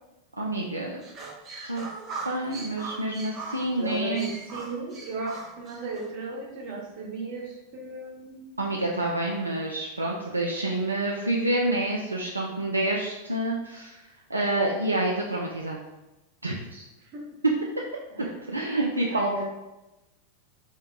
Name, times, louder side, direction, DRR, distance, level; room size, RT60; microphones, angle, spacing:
voice 1, 0.4-1.0 1.6-1.9 2.2-4.3 8.6-14.0 14.3-15.8 16.4-16.8 18.2-19.4, right 1 dB, 85° right, -2 dB, 0.3 m, -28 dB
sound 1, 1.0-6.1, right 4 dB, 30° right, 0.5 m, -39 dB
voice 2, 3.8-8.7 17.1-17.3 18.1-18.3 19.1-19.4, right 2 dB, 45° right, -3 dB, 0.9 m, -35 dB
2.7 x 2.2 x 3.6 m, 0.99 s
figure-of-eight pair, 90°, 0 cm